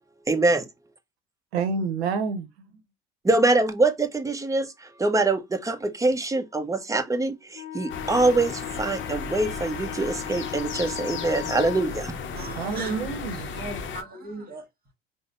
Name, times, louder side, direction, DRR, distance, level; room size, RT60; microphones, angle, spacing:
voice 1, 0.3-0.6 3.3-4.7 5.0-7.3 7.7-8.5 8.8-12.1, right 2 dB, 10° right, 0.6 m, -23 dB
voice 2, 1.5-2.8 12.3-13.5, right 5 dB, 85° right, 0.7 m, -29 dB
Wind instrument woodwind instrument, 7.5-11.9, left 10 dB, 75° left, 0.5 m, -37 dB
sound 1, 7.9-14.0, left 5 dB, 40° left, 0.7 m, -35 dB
voice 3, 12.3-13.1 13.4-14.7, right 3 dB, 30° right, 1.4 m, -36 dB
4.9 x 2.1 x 2.4 m
hypercardioid pair, 70°, 31 cm